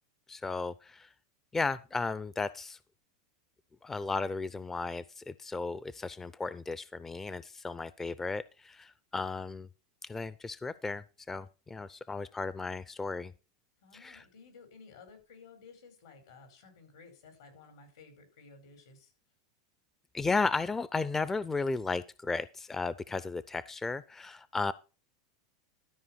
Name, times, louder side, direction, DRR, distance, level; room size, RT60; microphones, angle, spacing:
voice 1, 0.3-1.1 1.5-2.8 3.8-9.7 10.0-13.3 13.9-14.2 20.1-24.7, left 3 dB, 15° left, 17 dB, 0.4 m, -34 dB
voice 2, 13.8-19.1, left 4 dB, 75° left, 6 dB, 4.7 m, -55 dB
12.5 x 5.1 x 5.7 m, 0.32 s
hypercardioid pair, 110°, 2 cm